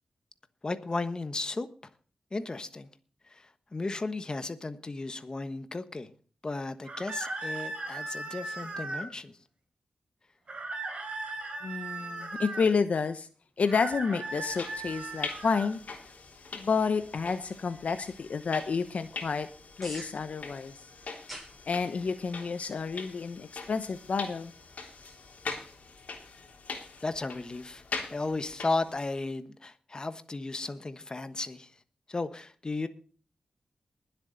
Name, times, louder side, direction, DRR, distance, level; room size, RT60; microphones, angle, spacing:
voice 1, 0.6-1.7 2.3-2.9 3.3-6.1 6.4-9.4 27.0-27.8 28.1-31.7 32.1-32.9, left 3 dB, 35° left, 1.2 m, -35 dB
sound 1, 6.8-9.1 10.5-12.7 13.6-15.7, right 2 dB, 45° right, 4.2 m, -37 dB
voice 2, 11.6-13.3 13.6-15.8 16.5-19.5 19.8-20.7 21.6-24.5, left 5 dB, 65° left, 0.9 m, -30 dB
sound 2, 14.3-29.2, left 4 dB, 80° left, 3.4 m, -43 dB
sound 3, 16.9-27.5, equal, ahead, 7.6 m, -54 dB
21.0 x 8.1 x 4.0 m
wide cardioid pair, 105°, 3 cm